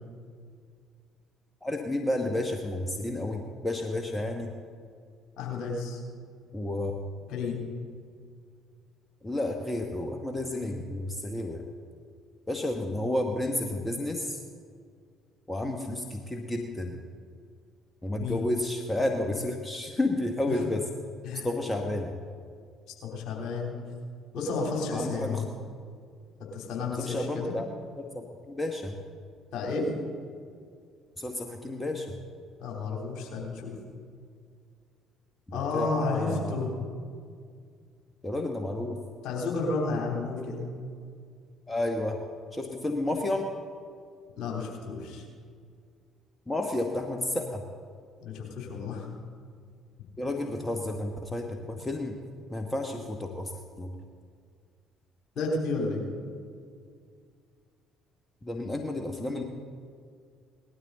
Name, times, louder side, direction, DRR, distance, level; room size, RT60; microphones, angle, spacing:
voice 1, 1.6-4.5 6.5-7.0 9.2-11.7 12.5-14.4 15.5-17.0 18.0-20.9 21.4-22.1 24.9-25.4 27.0-27.7 28.0-28.9 31.2-32.1 35.5-36.5 38.2-39.0 41.7-42.2 42.5-43.5 46.5-47.6 50.2-52.2 52.5-53.5 53.8-53.9 58.4-59.4, left 1 dB, 15° left, 3 dB, 1.2 m, -31 dB
voice 2, 5.4-6.0 7.3-7.6 18.2-18.4 20.5-20.6 21.2-21.5 23.0-23.8 24.3-25.5 26.5-27.5 29.5-29.9 32.6-33.7 35.5-36.7 39.2-40.7 44.4-45.2 48.2-49.0 55.3-56.0, left 3 dB, 55° left, -1 dB, 3.4 m, -31 dB
18.5 x 12.5 x 4.0 m, 2.1 s
figure-of-eight pair, 50°, 0 cm